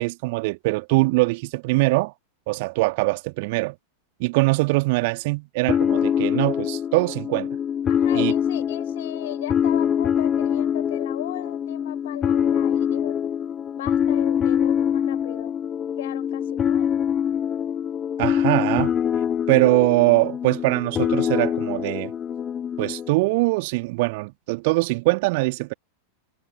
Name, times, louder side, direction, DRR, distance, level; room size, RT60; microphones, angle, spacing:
voice 1, 0.0-2.1 2.5-3.7 4.2-7.5 8.1-8.3 18.2-18.9 19.5-22.1 22.8-25.7, right 25 dB, 50° right, 2.5 m, -22 dB
sound 1, 5.7-23.1, left 8 dB, 25° left, 0.5 m, -24 dB
voice 2, 7.9-13.2 13.7-15.6 16.0-16.9, left 15 dB, 55° left, 5.6 m, -37 dB
figure-of-eight pair, 90°, 0 cm